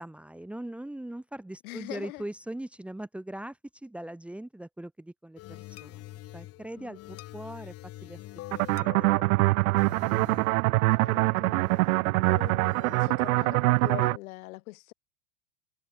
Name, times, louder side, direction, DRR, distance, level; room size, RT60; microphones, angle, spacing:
voice 1, 0.0-7.7 8.0-8.2 8.7-9.1, right 1 dB, 5° right, 1.6 m, -41 dB
voice 2, 1.6-2.2 11.0-11.6 12.2-14.9, left 20 dB, 65° left, 2.8 m, -41 dB
sound 1, 5.4-14.0, left 17 dB, 30° left, 3.4 m, -46 dB
sound 2, 8.5-14.2, right 23 dB, 65° right, 0.8 m, -24 dB
supercardioid pair, 175°, 45 cm